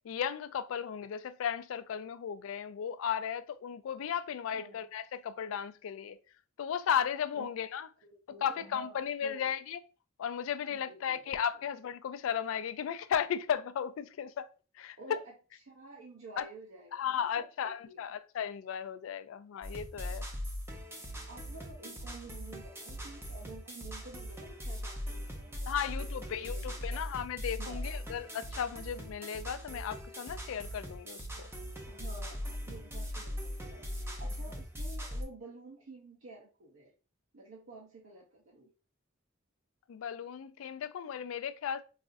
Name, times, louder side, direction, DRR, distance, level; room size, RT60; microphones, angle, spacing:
voice 1, 0.0-6.2 6.6-7.9 8.4-9.8 10.2-14.5 14.8-15.0 16.4-16.5 16.9-20.3 25.7-31.5 39.9-41.8, left 8 dB, 80° left, 0.3 m, -35 dB
voice 2, 8.0-9.5 10.7-11.3 15.0-15.3 15.6-18.0 19.9-20.3 21.3-25.9 26.3-27.1 27.6-28.0 31.8-33.8 34.2-36.9 37.3-38.7, right 2 dB, 80° right, 0.6 m, -51 dB
sound 1, 19.6-35.2, equal, 10° right, 0.6 m, -40 dB
4.1 x 2.4 x 2.5 m
head